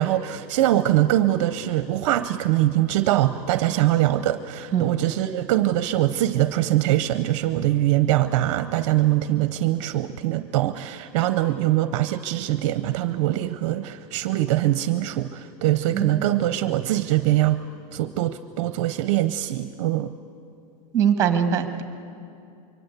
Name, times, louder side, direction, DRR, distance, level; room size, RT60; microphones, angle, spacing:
voice 1, 0.0-17.6 17.9-20.1, right 14 dB, 50° right, 12 dB, 0.7 m, -23 dB
voice 2, 15.9-16.3 20.9-21.8, right 8 dB, 15° right, 8 dB, 1.4 m, -22 dB
25.0 x 23.5 x 8.2 m, 2.6 s
supercardioid pair, 180°, 20 cm